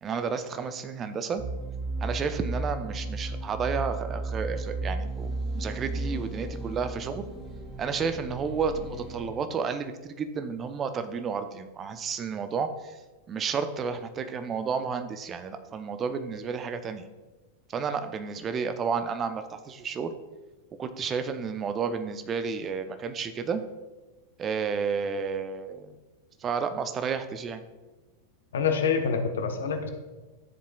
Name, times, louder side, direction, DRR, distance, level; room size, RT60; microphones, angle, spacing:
voice 1, 0.0-1.4 2.0-7.2 7.8-13.0 13.3-17.1 17.7-20.1 20.8-23.6 24.4-26.0 26.4-27.6, right 6 dB, 25° right, 9 dB, 0.7 m, -31 dB
sound 1, 1.4-9.3, right 2 dB, 10° right, 2.4 m, -34 dB
voice 2, 28.5-29.9, left 6 dB, 65° left, 5 dB, 1.1 m, -26 dB
13.5 x 7.3 x 2.3 m, 1.2 s
figure-of-eight pair, 90°, 0 cm